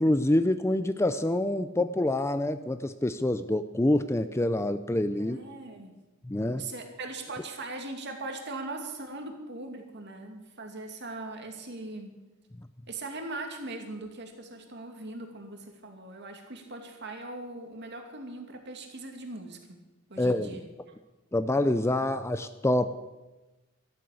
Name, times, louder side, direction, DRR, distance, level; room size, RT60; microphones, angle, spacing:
voice 1, 0.0-5.4 6.2-6.7 20.2-20.6 21.3-22.9, left 1 dB, 15° left, 11 dB, 0.5 m, -26 dB
voice 2, 5.2-6.0 6.6-12.1 12.9-19.8 20.1-20.6, right 2 dB, 55° right, 3 dB, 2.6 m, -40 dB
13.0 x 12.5 x 8.4 m, 1.1 s
head